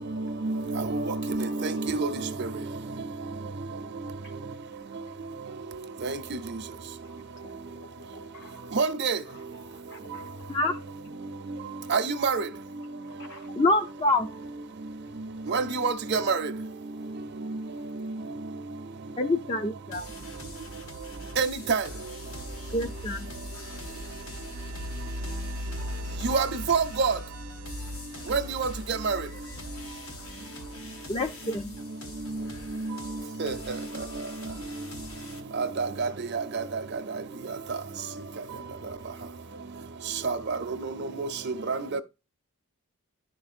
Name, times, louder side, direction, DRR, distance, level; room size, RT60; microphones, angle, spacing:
voice 1, 0.1-2.5 6.0-6.4 8.7-9.2 11.9-12.5 15.5-16.5 17.5-17.6 21.4-21.9 26.2-27.2 28.3-29.2 32.3-32.4 32.7-32.9 33.4-33.8 35.5-37.2 37.7-37.8 40.2-42.0, right 4 dB, 50° right, 0.6 m, -28 dB
voice 2, 3.2-4.1 7.0-8.6 9.7-10.5 13.0-13.5 30.6-30.7, left 2 dB, 50° left, 1.3 m, -52 dB
voice 3, 13.6-14.3 19.2-20.1 22.7-23.3 31.1-31.8, left 2 dB, 25° left, 0.4 m, -26 dB
sound 1, 19.9-35.4, left 2 dB, 80° left, 1.3 m, -45 dB
sound 2, 20.9-31.3, left 1 dB, 90° right, 0.6 m, -40 dB
11.0 x 4.6 x 2.4 m
head